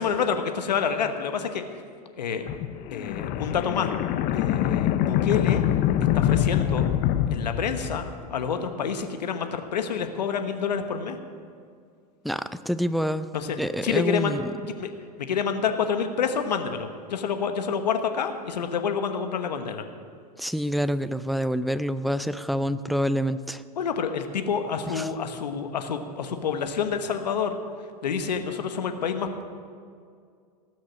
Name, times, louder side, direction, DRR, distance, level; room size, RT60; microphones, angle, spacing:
voice 1, 0.0-1.6 2.2-2.5 2.9-3.9 4.3-5.6 6.1-6.9 7.3-8.0 8.3-11.2 13.3-14.3 14.7-14.9 15.3-19.8 23.8-27.6 28.0-29.4, left 6 dB, 85° left, 7 dB, 1.2 m, -28 dB
sound 1, 2.5-8.3, left 11 dB, 45° left, 0.7 m, -25 dB
voice 2, 12.2-13.3 13.6-14.5 20.4-23.6 24.9-25.1, equal, ahead, 13 dB, 0.3 m, -27 dB
18.0 x 6.4 x 7.4 m, 2.2 s
hypercardioid pair, 105°, 21 cm